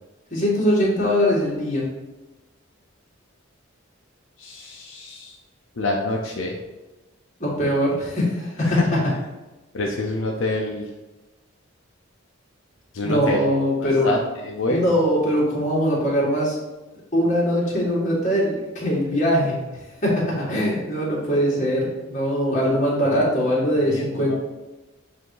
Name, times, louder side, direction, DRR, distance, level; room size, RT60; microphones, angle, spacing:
voice 1, 0.3-1.9 7.4-8.8 13.0-14.1 14.7-16.6 17.1-19.7 20.0-24.4, equal, 35° left, -5 dB, 2.0 m, -21 dB
voice 2, 4.4-5.4 5.8-6.6 8.6-8.8 9.7-10.9 12.9-13.4 14.0-14.8 23.1-23.3 23.8-24.4, left 2 dB, 75° left, 0 dB, 0.7 m, -27 dB
7.6 x 2.8 x 4.7 m, 1.1 s
head